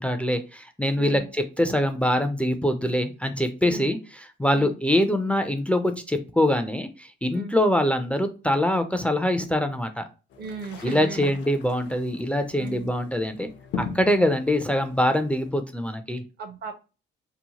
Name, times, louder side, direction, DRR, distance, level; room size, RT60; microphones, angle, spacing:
voice 1, 0.0-4.0 4.4-10.0 10.8-13.5 13.8-16.2, left 1 dB, 5° left, 7 dB, 0.4 m, -24 dB
sound 1, 10.3-15.5, left 5 dB, 65° left, 0.5 m, -40 dB
voice 2, 10.4-11.4 12.6-12.9 14.0-14.2 16.4-16.7, right 4 dB, 55° right, 7 dB, 0.7 m, -36 dB
2.8 x 2.1 x 2.8 m, 0.32 s
cardioid pair, 90°, 20 cm